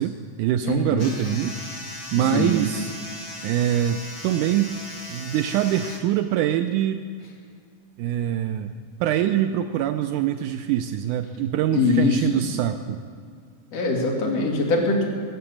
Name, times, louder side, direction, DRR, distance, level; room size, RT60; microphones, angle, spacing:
voice 1, 0.0-1.6 2.1-2.9 3.4-4.7 5.1-7.0 8.0-8.7 9.0-13.0, right 11 dB, 80° right, 8 dB, 2.0 m, -24 dB
voice 2, 0.6-1.2 2.3-2.6 11.7-12.4 13.7-15.0, left 3 dB, 50° left, -1 dB, 3.3 m, -22 dB
sound 1, 1.0-6.0, left 1 dB, 20° left, 1.0 m, -38 dB
21.5 x 7.9 x 7.2 m, 2.1 s
omnidirectional pair, 3.7 m